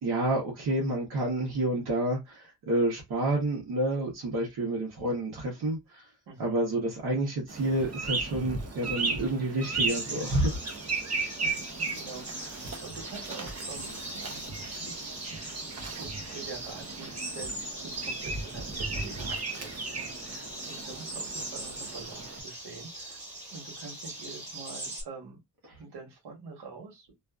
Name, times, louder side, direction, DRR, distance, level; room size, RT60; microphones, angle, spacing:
voice 1, 0.0-6.0 6.4-10.9, right 1 dB, 70° right, 0.9 m, -29 dB
voice 2, 6.3-6.6 11.4-25.4 25.8-27.1, right 4 dB, 85° right, 1.2 m, -46 dB
sound 1, 7.5-22.4, right 3 dB, 40° right, 0.7 m, -36 dB
sound 2, 9.9-25.0, right 1 dB, 20° right, 1.5 m, -41 dB
2.5 x 2.4 x 2.3 m
wide cardioid pair, 145°, 39 cm